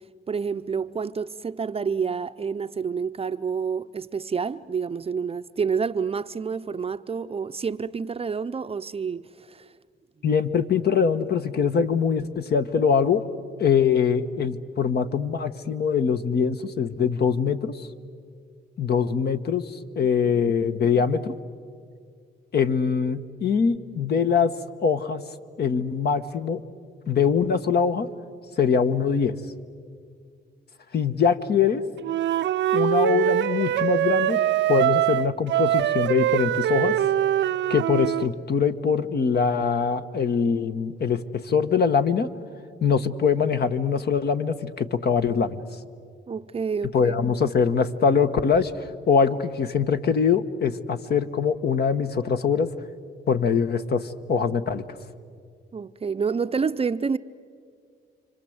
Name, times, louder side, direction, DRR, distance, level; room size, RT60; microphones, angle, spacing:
voice 1, 0.3-9.7 20.0-20.6 46.3-47.1 55.7-57.2, right 5 dB, 30° right, 0.6 m, -28 dB
voice 2, 10.2-13.2 13.6-17.9 18.8-21.3 22.5-24.5 24.8-25.2 25.6-26.6 27.1-28.1 28.6-29.4 30.9-31.8 32.7-34.4 34.7-37.0 37.7-42.3 42.8-45.6 46.9-52.7 53.3-54.8, left 6 dB, 55° left, 1.3 m, -23 dB
Wind instrument woodwind instrument, 32.0-38.3, right 12 dB, 70° right, 0.6 m, -23 dB
29.5 x 25.0 x 8.0 m
cardioid pair, 90°, 20 cm